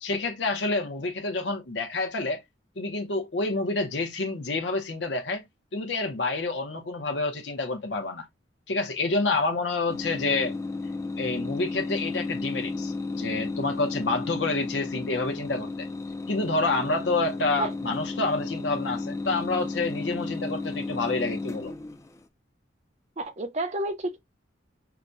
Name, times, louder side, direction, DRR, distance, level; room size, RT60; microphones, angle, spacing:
voice 1, 0.0-2.4 2.8-5.4 5.7-8.3 8.7-10.6 11.2-15.9 16.3-21.7, left 3 dB, 70° left, 0.7 m, -28 dB
sound 1, 9.9-22.2, left 3 dB, 15° left, 0.4 m, -33 dB
voice 2, 23.2-24.2, right 2 dB, 35° right, 0.6 m, -30 dB
5.7 x 2.2 x 2.5 m
head